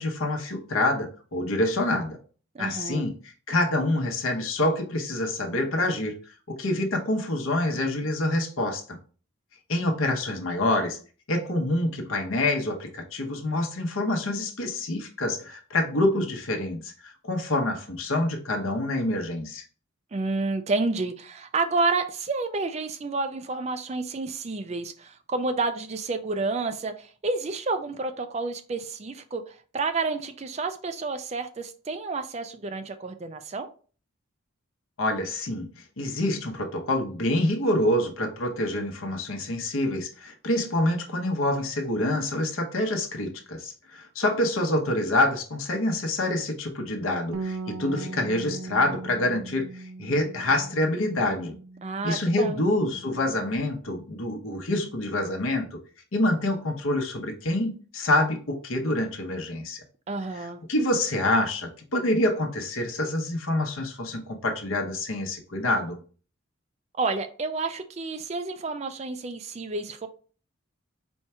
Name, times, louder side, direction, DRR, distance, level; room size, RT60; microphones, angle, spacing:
voice 1, 0.0-2.2 2.6-6.2 6.5-9.0 9.7-11.0 11.3-19.6 35.0-51.5 52.0-55.8 56.1-59.8 60.4-66.0, left 1 dB, 80° left, 1.0 m, -26 dB
voice 2, 2.5-3.0 20.1-33.7 51.8-52.6 60.1-60.6 67.0-70.1, right 3 dB, 30° right, 0.4 m, -30 dB
Bass guitar, 47.3-53.6, right 3 dB, 90° right, 0.5 m, -39 dB
4.4 x 2.4 x 4.3 m
head